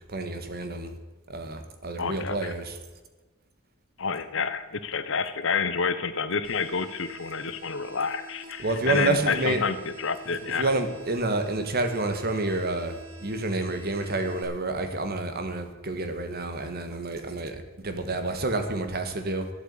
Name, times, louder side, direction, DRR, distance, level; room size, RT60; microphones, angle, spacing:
voice 1, 0.1-0.9 1.3-2.8 8.6-9.6 10.6-19.5, right 2 dB, 45° right, 7 dB, 1.6 m, -29 dB
voice 2, 2.0-2.5 4.0-10.7, left 5 dB, 60° left, 12 dB, 0.9 m, -29 dB
sound 1, 6.4-14.4, right 3 dB, 70° right, 2.4 m, -47 dB
12.0 x 8.2 x 8.4 m, 1.2 s
head